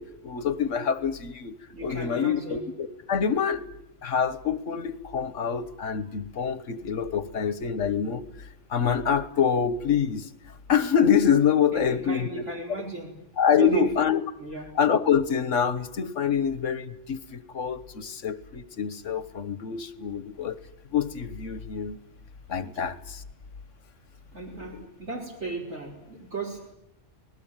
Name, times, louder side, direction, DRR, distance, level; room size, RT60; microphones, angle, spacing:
voice 1, 0.0-3.7 4.0-8.2 8.7-10.3 10.7-12.4 13.4-14.2 14.7-20.6 20.9-22.0 22.5-23.2 24.5-24.9, left 7 dB, 90° left, 13 dB, 1.6 m, -26 dB
voice 2, 1.7-2.6 11.7-13.1 13.6-13.8 14.4-14.6 24.3-26.7, right 4 dB, 70° right, -2 dB, 5.2 m, -35 dB
27.0 x 19.5 x 9.1 m, 0.82 s
omnidirectional pair, 1.2 m